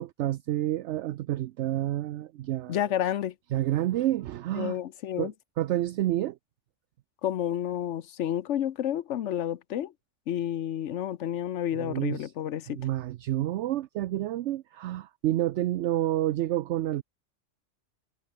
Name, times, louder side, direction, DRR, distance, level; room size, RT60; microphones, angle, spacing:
voice 1, 0.0-2.8 3.5-4.8 5.2-5.3 5.6-6.4 11.7-12.3 12.7-17.0, right 14 dB, 70° right, 0.8 m, -29 dB
voice 2, 2.7-3.3 4.5-5.3 7.2-9.9 10.3-12.9, left 11 dB, 70° left, 1.1 m, -30 dB
omnidirectional pair, 1.3 m